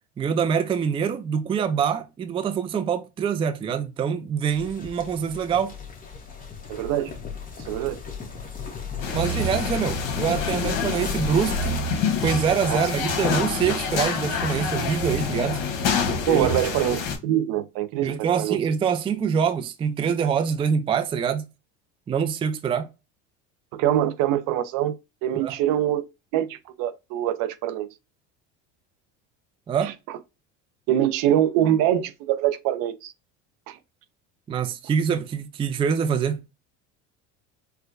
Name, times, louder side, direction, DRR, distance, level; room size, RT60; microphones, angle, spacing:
voice 1, 0.2-5.7 9.1-11.8 12.2-15.6 16.3-16.5 18.0-21.4 22.1-22.9 25.3-25.5 29.7-29.9 34.5-36.4, right 7 dB, 15° right, 0.3 m, -25 dB
sound 1, 4.5-11.8, left 6 dB, 25° left, 1.0 m, -35 dB
voice 2, 6.7-7.1 7.6-8.0 12.7-12.9 16.3-18.6 23.7-25.0 25.2-26.0 26.3-27.9 29.8-29.9 30.9-33.1 33.7-33.8, right 11 dB, 65° right, 0.6 m, -24 dB
sound 2, 9.0-17.2, left 4 dB, 70° left, 1.1 m, -27 dB
4.4 x 2.1 x 2.5 m
supercardioid pair, 100°, 36 cm